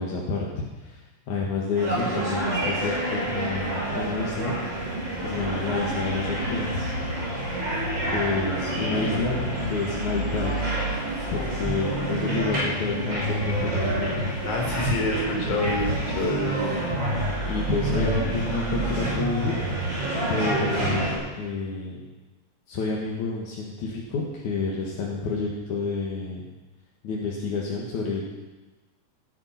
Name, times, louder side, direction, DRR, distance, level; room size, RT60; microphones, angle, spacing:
voice 1, 0.0-4.6 5.2-6.9 8.1-9.4 9.7-10.6 11.3-14.3 14.9-15.1 17.5-19.6 20.3-22.0 22.7-26.4 27.0-28.3, left 4 dB, 75° left, -3 dB, 3.2 m, -29 dB
sound 1, 1.8-21.2, right 1 dB, 35° right, 6.0 m, -28 dB
voice 2, 8.7-9.3 14.4-17.1, left 1 dB, 50° left, 0 dB, 5.2 m, -28 dB
18.0 x 11.0 x 5.8 m, 1.2 s
omnidirectional pair, 3.5 m